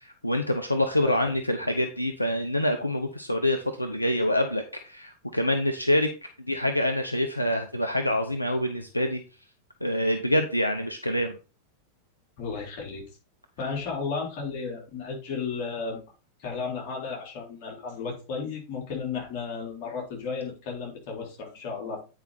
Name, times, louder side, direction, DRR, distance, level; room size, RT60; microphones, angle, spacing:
voice 1, 0.0-6.1 6.5-9.2 9.8-11.4, left 1 dB, 85° left, 5 dB, 0.8 m, -26 dB
voice 2, 12.4-13.0 13.6-16.1 16.4-22.0, left 5 dB, 45° left, -2 dB, 4.2 m, -34 dB
9.2 x 5.0 x 4.2 m, 0.32 s
figure-of-eight pair, 90°, 0 cm